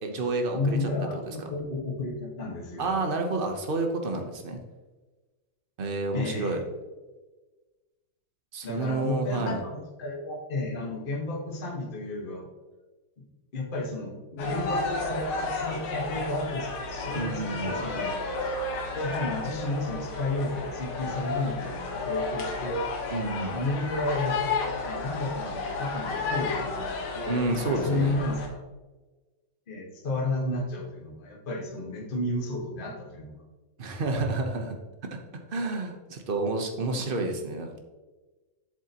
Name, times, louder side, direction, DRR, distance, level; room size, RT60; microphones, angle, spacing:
voice 1, 0.0-0.8 1.1-1.3 2.8-4.6 5.8-6.6 8.5-9.6 17.1-17.8 23.1-23.6 27.3-28.1 33.8-34.7 35.5-37.8, right 2 dB, 55° right, 4 dB, 0.5 m, -29 dB
voice 2, 0.5-2.9 6.1-6.6 8.6-12.5 13.2-13.3 13.5-18.1 18.9-23.1 23.5-24.4 24.6-28.6 29.7-33.4, left 2 dB, 30° left, 0 dB, 1.4 m, -32 dB
sound 1, 14.4-28.5, left 3 dB, 80° left, 2.1 m, -32 dB
8.0 x 7.3 x 2.9 m, 1.2 s
omnidirectional pair, 2.3 m